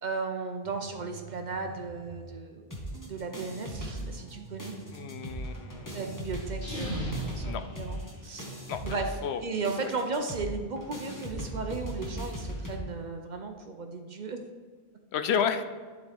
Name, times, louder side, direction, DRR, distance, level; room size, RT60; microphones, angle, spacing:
voice 1, 0.0-2.7 3.1-4.7 5.9-8.4 8.8-9.2 9.4-14.4, right 4 dB, 50° right, 4 dB, 0.7 m, -35 dB
sound 1, 0.6-2.4 2.9-6.4, right 4 dB, 80° right, 1.2 m, -47 dB
sound 2, 2.7-4.3 4.6-12.8, equal, 20° left, 1.2 m, -38 dB
voice 2, 4.9-6.0 7.4-7.6 8.7-8.8 9.2-9.4 15.1-15.6, left 7 dB, 80° left, 9 dB, 0.8 m, -31 dB
sound 3, 6.5-8.7, equal, 50° left, 1.8 m, -37 dB
10.5 x 4.0 x 3.4 m, 1.5 s
omnidirectional pair, 1.1 m